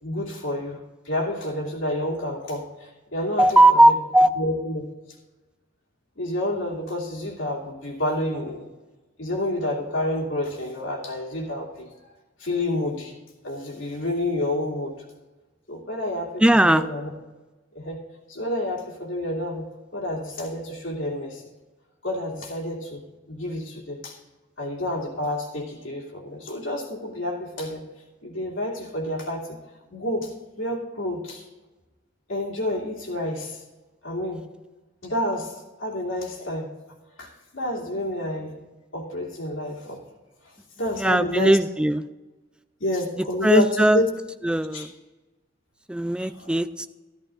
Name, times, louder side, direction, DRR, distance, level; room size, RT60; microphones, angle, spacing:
voice 1, 0.0-3.9 4.4-4.8 6.2-8.7 9.2-11.9 12.4-13.1 13.4-15.0 15.7-17.1 17.7-18.0 18.3-19.7 19.9-21.4 22.0-24.2 24.6-27.8 28.2-29.6 29.9-31.5 32.3-33.6 34.0-34.4 35.0-36.7 37.2-38.6 38.9-40.0 40.4-41.6 42.8-44.1 44.7-44.8 46.2-46.5, left 1 dB, 80° left, -3 dB, 2.7 m, -29 dB
voice 2, 3.4-4.3 16.4-16.9 40.9-42.1 43.4-44.0 44.4-44.9 45.9-46.9, right 1 dB, 5° right, 11 dB, 0.3 m, -18 dB
13.5 x 13.5 x 2.5 m, 1.2 s
head